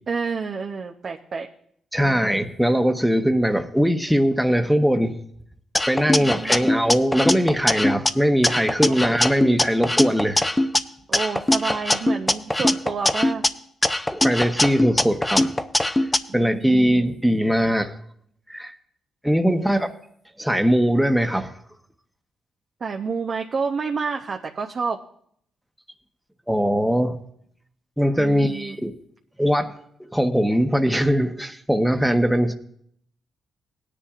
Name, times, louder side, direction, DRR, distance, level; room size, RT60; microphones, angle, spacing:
voice 1, 0.1-1.5 2.0-2.3 6.1-6.7 8.9-9.0 11.1-13.4 16.3-17.2 19.5-19.9 22.8-25.0 28.2-28.8, right 5 dB, 55° right, 0.7 m, -29 dB
voice 2, 1.9-5.2 5.9-10.5 14.1-15.5 16.3-17.9 18.5-18.8 19.2-19.9 20.4-21.5 26.5-27.2 28.0-28.9 29.4-29.7 30.0-32.5, equal, ahead, 1.0 m, -21 dB
sound 1, 5.7-8.1 8.4-10.8 11.1-13.5 13.8-16.2, left 1 dB, 15° left, 0.6 m, -21 dB
18.0 x 10.0 x 2.5 m
supercardioid pair, 60°, 0 cm